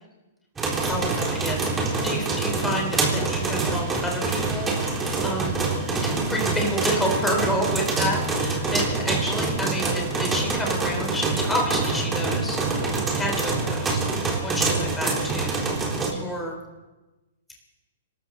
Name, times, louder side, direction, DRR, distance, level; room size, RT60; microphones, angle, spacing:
sound 1, 0.6-16.1, right 3 dB, 15° right, 3.7 m, -25 dB
voice 1, 0.9-15.6 16.1-16.6, equal, 10° left, 0 dB, 4.1 m, -30 dB
26.5 x 13.5 x 4.0 m, 1.1 s
hypercardioid pair, 120°, 0 cm